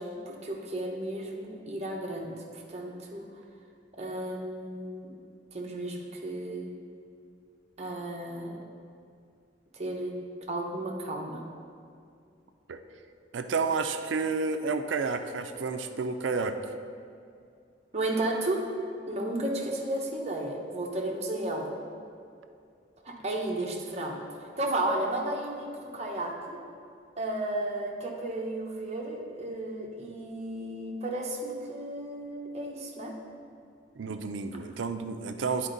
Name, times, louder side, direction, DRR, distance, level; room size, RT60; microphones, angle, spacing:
voice 1, 0.0-3.3 4.0-5.2 5.5-6.7 7.8-8.6 9.7-10.1 10.5-11.4 17.9-18.6 19.1-21.7 23.0-26.6 27.2-33.1, right 1 dB, 35° right, 0 dB, 0.9 m, -33 dB
voice 2, 13.3-16.7 34.0-35.7, right 4 dB, 85° right, 8 dB, 0.4 m, -30 dB
9.9 x 4.4 x 3.9 m, 2.4 s
head